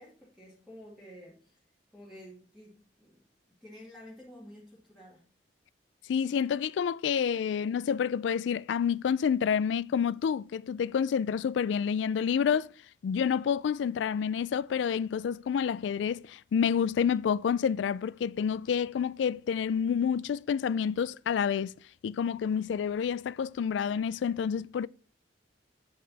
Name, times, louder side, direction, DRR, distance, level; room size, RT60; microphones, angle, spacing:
voice 1, 0.0-1.6 1.9-3.2 3.5-5.2, equal, ahead, 2.0 m, -51 dB
voice 2, 6.1-12.7 13.0-21.7 22.0-24.9, left 7 dB, 85° left, 0.3 m, -28 dB
8.7 x 5.5 x 4.0 m
head